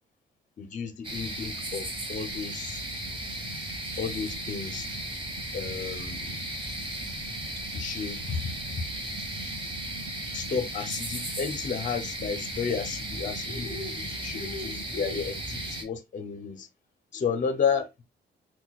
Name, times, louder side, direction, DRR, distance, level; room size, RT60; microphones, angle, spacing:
voice 1, 0.6-2.9 4.0-4.9 5.5-6.4 7.7-8.8 10.3-13.7 13.9-16.7 17.1-17.9, left 6 dB, 40° left, 0.6 m, -32 dB
sound 1, 1.0-15.8, right 1 dB, 25° right, 1.2 m, -35 dB
5.8 x 2.2 x 2.3 m
cardioid pair, 90°, 20 cm